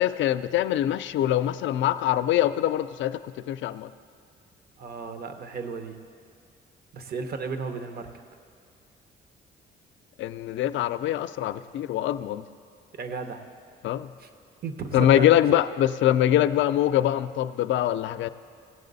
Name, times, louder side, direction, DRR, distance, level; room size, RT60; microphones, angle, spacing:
voice 1, 0.0-3.2 3.5-3.9 10.2-12.4 13.8-14.1 14.9-18.3, left 12 dB, 75° left, 13 dB, 0.4 m, -23 dB
voice 2, 4.8-6.0 6.9-8.1 13.0-13.4 14.2-14.3 14.6-15.6, right 5 dB, 50° right, 8 dB, 0.9 m, -34 dB
16.5 x 7.6 x 4.0 m, 2.4 s
cardioid pair, 90°, 20 cm